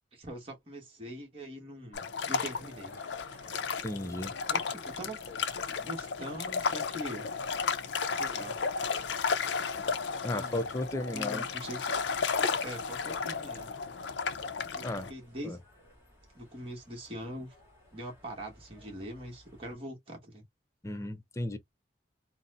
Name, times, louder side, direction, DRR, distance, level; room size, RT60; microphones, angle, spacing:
voice 1, 0.1-3.0 4.1-5.2 5.8-7.2 8.1-8.6 10.2-10.6 11.1-11.9 12.6-13.7 14.7-15.6 16.3-17.6 17.9-20.4, right 1 dB, 35° right, 1.2 m, -43 dB
sound 1, 1.9-15.1, left 5 dB, 85° left, 0.5 m, -33 dB
sound 2, 2.4-19.7, left 1 dB, 15° right, 2.0 m, -58 dB
voice 2, 3.8-4.3 10.2-11.4 14.8-15.1 15.4-15.6 20.8-21.6, left 1 dB, 15° left, 0.5 m, -34 dB
4.0 x 2.0 x 2.4 m
head